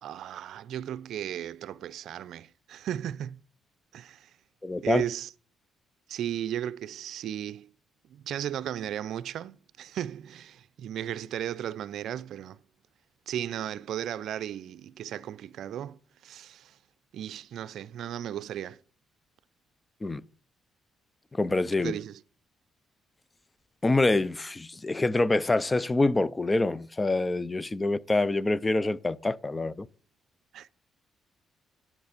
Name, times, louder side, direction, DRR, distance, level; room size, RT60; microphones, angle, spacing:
voice 1, 0.0-3.4 3.9-4.3 4.8-5.3 6.1-7.7 8.1-12.6 13.3-16.8 17.1-18.8 21.8-22.2 30.5-30.7, right 11 dB, 75° right, 0.5 m, -35 dB
voice 2, 4.6-5.0 20.0-20.2 21.3-21.9 23.8-29.9, left 2 dB, 20° left, 0.6 m, -26 dB
10.5 x 7.3 x 6.6 m
cardioid pair, 90°, 0 cm